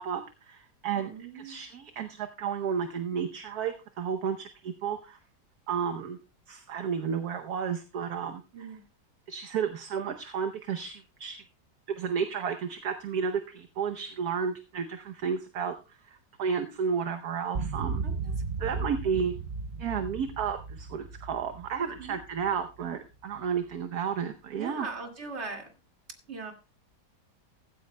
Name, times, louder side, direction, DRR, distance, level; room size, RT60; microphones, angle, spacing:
voice 1, 0.0-5.2 5.7-6.2 6.5-8.4 9.3-11.4 11.9-18.0 18.6-19.3 19.8-24.9, right 6 dB, 65° right, 6 dB, 1.3 m, -32 dB
voice 2, 0.9-1.6 8.5-8.8 18.0-18.3 18.6-18.9 22.0-22.2 24.6-25.7 26.3-26.5, right 4 dB, 40° right, 3 dB, 2.4 m, -40 dB
sound 1, 17.5-22.9, right 4 dB, 85° right, 0.4 m, -35 dB
15.5 x 14.5 x 2.2 m, 0.30 s
omnidirectional pair, 1.9 m